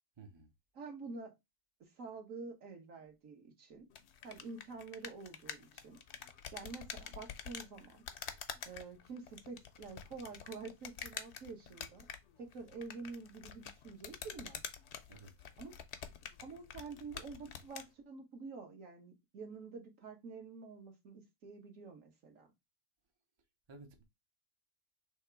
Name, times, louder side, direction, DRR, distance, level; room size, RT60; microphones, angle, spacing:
voice 1, 0.2-0.5 15.1-15.3 23.7-24.0, right 3 dB, 35° right, 0.5 m, -54 dB
voice 2, 0.7-1.3 1.9-3.9 4.2-6.0 6.5-8.0 8.6-12.1 12.4-14.6 15.6-15.7 16.4-22.5, right 4 dB, 60° right, 1.4 m, -48 dB
sound 1, 3.9-17.9, left 8 dB, 60° left, 0.8 m, -48 dB
3.5 x 2.9 x 4.5 m
omnidirectional pair, 1.6 m